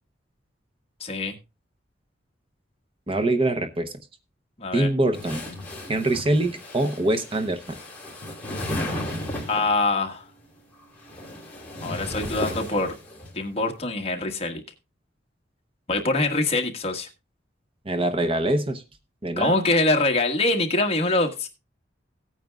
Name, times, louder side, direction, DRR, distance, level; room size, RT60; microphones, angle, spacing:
voice 1, 1.0-1.3 4.6-4.9 9.5-10.2 11.8-12.9 13.3-14.6 15.9-17.1 19.4-21.5, left 2 dB, 35° left, 2 dB, 1.5 m, -24 dB
voice 2, 3.1-3.9 4.7-5.4 5.9-7.8 17.9-18.8 19.2-19.5, right 1 dB, 30° right, 7 dB, 0.8 m, -24 dB
sound 1, 5.1-9.8 10.8-13.3, left 1 dB, 10° left, 3.2 m, -34 dB
17.5 x 9.1 x 2.3 m, 0.27 s
head